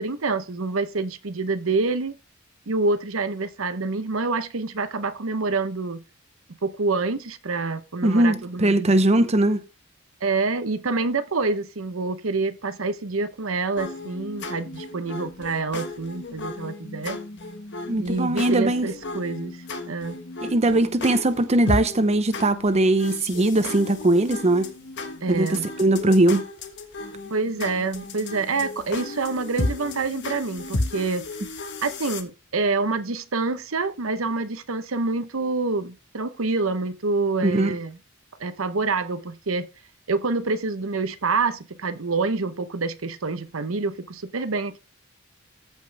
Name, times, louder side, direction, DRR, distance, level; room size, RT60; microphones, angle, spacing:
voice 1, 0.0-2.1 2.7-6.0 6.6-9.0 10.2-17.2 18.0-19.6 19.9-20.2 25.2-25.7 27.3-31.3 31.8-38.0 38.4-39.7 40.1-44.8, right 3 dB, 85° right, 0.9 m, -27 dB
voice 2, 8.0-9.6 17.9-18.9 20.4-24.7 25.3-26.5 37.4-37.7, right 1 dB, 35° right, 0.8 m, -20 dB
sound 1, 13.8-32.2, left 2 dB, 60° left, 1.6 m, -34 dB
14.5 x 5.5 x 3.4 m
head